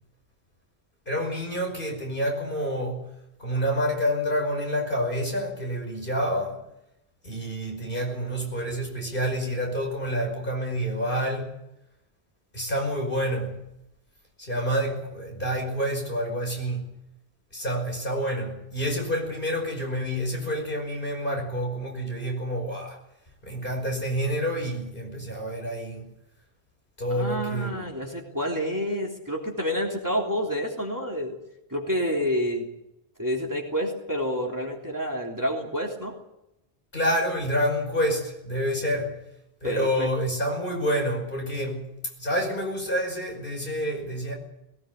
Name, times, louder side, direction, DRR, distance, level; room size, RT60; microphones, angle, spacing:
voice 1, 1.1-3.0 3.4-6.6 7.2-11.6 12.5-13.6 14.4-16.9 17.5-23.0 23.4-26.1 27.0-27.9 36.9-39.2 39.6-41.8 42.2-44.3, equal, 55° left, 5.6 m, -28 dB
voice 2, 27.1-31.3 31.7-32.7 33.2-36.2 39.6-40.1, equal, 15° right, 3.4 m, -28 dB
19.5 x 18.5 x 8.3 m
omnidirectional pair, 1.1 m